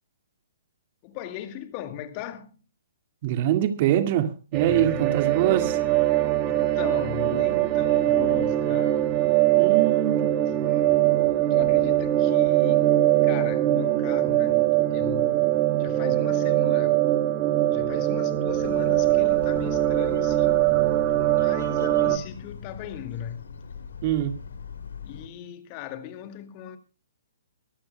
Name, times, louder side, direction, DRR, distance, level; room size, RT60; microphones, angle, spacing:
voice 1, 1.0-2.6 4.6-5.2 6.5-9.1 10.5-10.9 11.5-17.1 17.7-20.7 21.3-23.5 25.0-26.8, left 10 dB, 35° left, 2.1 m, -38 dB
voice 2, 3.2-5.8 9.6-10.3 24.0-24.4, right 12 dB, 45° right, 2.1 m, -24 dB
sound 1, 4.5-22.2, right 14 dB, 30° right, 1.6 m, -22 dB
sound 2, 18.6-25.3, left 6 dB, 75° left, 2.8 m, -40 dB
23.0 x 15.5 x 2.2 m
hypercardioid pair, 135°, 0 cm